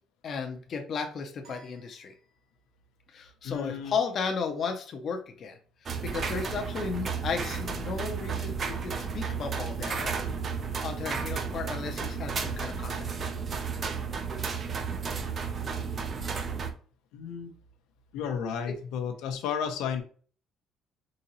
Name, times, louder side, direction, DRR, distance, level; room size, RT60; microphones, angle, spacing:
voice 1, 0.2-2.1 3.1-10.2 10.8-13.1, left 5 dB, 35° left, 3 dB, 0.5 m, -34 dB
sound 1, 1.4-2.9, right 3 dB, 45° right, 1.1 m, -56 dB
voice 2, 3.4-3.9 17.1-17.5 18.1-20.0, left 7 dB, 85° left, 6 dB, 0.6 m, -32 dB
sound 2, 5.9-16.7, right 5 dB, 30° right, 0.4 m, -33 dB
3.9 x 2.8 x 2.8 m, 0.43 s
cardioid pair, 180°, 0 cm